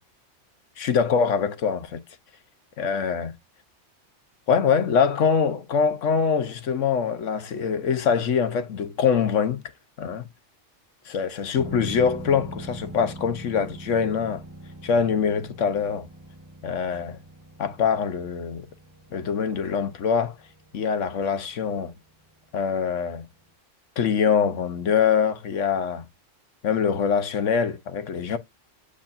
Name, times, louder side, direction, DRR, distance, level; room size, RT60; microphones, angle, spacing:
voice 1, 0.8-2.0 2.8-3.3 4.5-9.6 10.0-10.2 11.1-14.4 14.8-16.1 16.6-17.2 17.6-18.6 19.1-20.3 20.7-22.0 22.5-23.3 24.0-26.1 26.6-28.4, left 6 dB, 80° left, 1.3 m, -24 dB
sound 1, 11.5-23.1 23.4-23.5, right 2 dB, 15° right, 1.2 m, -43 dB
8.4 x 4.9 x 2.5 m
omnidirectional pair, 1.3 m